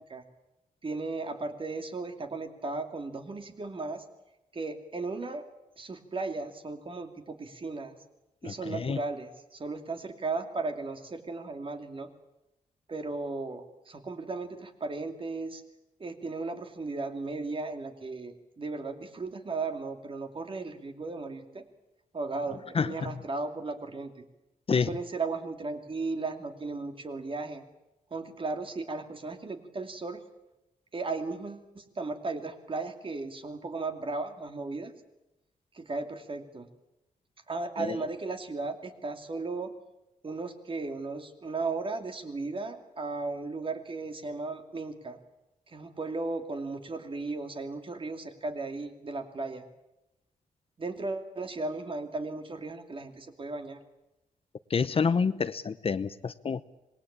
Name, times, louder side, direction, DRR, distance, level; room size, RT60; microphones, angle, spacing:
voice 1, 0.8-4.0 4.5-5.4 5.8-8.0 8.4-12.1 12.9-15.6 16.0-21.6 22.1-24.2 24.9-27.6 28.1-30.2 30.9-34.9 35.7-36.7 37.5-39.7 40.2-45.2 45.7-49.7 50.8-53.8, right 3 dB, 40° right, 7 dB, 2.6 m, -36 dB
voice 2, 8.4-9.0 22.7-23.2 24.7-24.9 37.8-38.0 54.7-56.6, left 5 dB, 40° left, 14 dB, 0.8 m, -28 dB
26.0 x 20.5 x 8.8 m, 0.93 s
wide cardioid pair, 150°, 14 cm